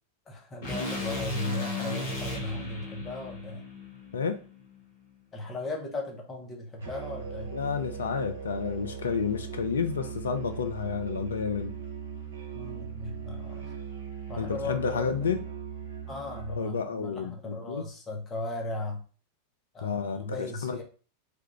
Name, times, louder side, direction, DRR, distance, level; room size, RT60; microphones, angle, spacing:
voice 1, 0.3-3.6 5.3-7.5 12.5-13.7 14.3-15.1 16.1-19.0 19.7-20.8, left 2 dB, 25° left, 0.7 m, -37 dB
sound 1, 0.6-4.8, left 2 dB, 50° left, 1.0 m, -35 dB
Musical instrument, 6.8-16.7, right 7 dB, 70° right, 0.8 m, -39 dB
voice 2, 7.5-11.7 14.4-15.4 16.5-17.8 19.8-20.8, left 6 dB, 65° left, 0.3 m, -30 dB
3.3 x 2.3 x 2.8 m
figure-of-eight pair, 90°, 0 cm